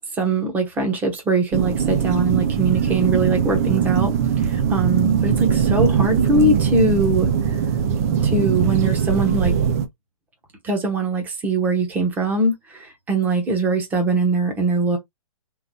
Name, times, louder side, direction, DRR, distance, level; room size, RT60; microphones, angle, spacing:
voice 1, 0.2-7.3 8.2-9.6 10.6-15.0, right 2 dB, 10° right, 0.9 m, -22 dB
sound 1, 1.5-9.9, right 7 dB, 25° right, 0.4 m, -20 dB
3.8 x 2.5 x 4.0 m
hypercardioid pair, 160°, 18 cm